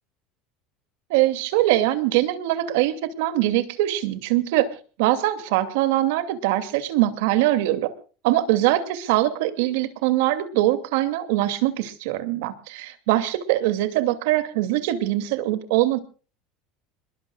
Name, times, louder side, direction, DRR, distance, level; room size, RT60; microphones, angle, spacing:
voice 1, 1.1-4.7 5.0-7.9 8.2-16.0, right 15 dB, 80° right, 11 dB, 2.5 m, -22 dB
27.0 x 21.5 x 2.4 m, 0.38 s
supercardioid pair, 135°, 0 cm